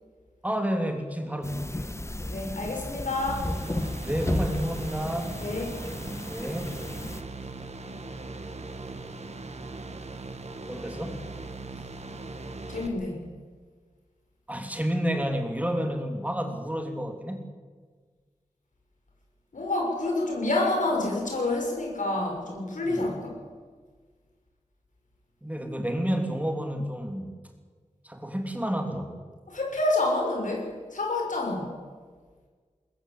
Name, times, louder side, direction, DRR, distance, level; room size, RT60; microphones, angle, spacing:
voice 1, 0.4-1.9 4.0-5.3 6.2-6.8 10.7-11.2 14.5-17.4 22.8-23.1 25.4-27.3 28.0-29.2, equal, 10° right, 4 dB, 3.1 m, -30 dB
sound 1, 1.4-7.2, left 1 dB, 20° left, 1.5 m, -34 dB
voice 2, 2.3-3.5 5.4-5.7 12.7-13.2 19.5-23.3 29.5-31.7, left 2 dB, 80° left, 0 dB, 6.5 m, -28 dB
sound 2, 3.3-12.9, right 3 dB, 60° right, 2.1 m, -39 dB
21.0 x 21.0 x 8.3 m, 1.6 s
wide cardioid pair, 65°, 13 cm